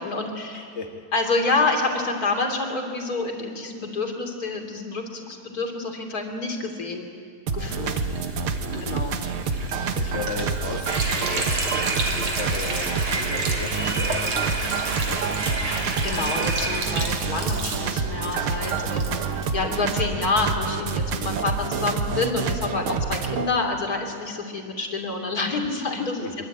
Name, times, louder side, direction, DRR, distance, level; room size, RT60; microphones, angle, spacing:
voice 1, 0.0-0.7 1.1-7.1 7.5-8.0 8.8-9.2 16.0-26.3, left 3 dB, 25° left, 3 dB, 3.0 m, -28 dB
voice 2, 0.5-1.1 8.7-9.0 9.9-15.2 26.2-26.4, left 3 dB, 80° left, 3 dB, 0.6 m, -36 dB
sound 1, 7.5-23.5, right 5 dB, 75° right, 1.2 m, -28 dB
Sink (filling or washing), 7.6-19.9, right 3 dB, 45° right, 3.6 m, -34 dB
sound 2, 10.8-16.9, right 2 dB, 25° right, 3.0 m, -30 dB
24.0 x 24.0 x 9.2 m, 2.2 s
omnidirectional pair, 4.2 m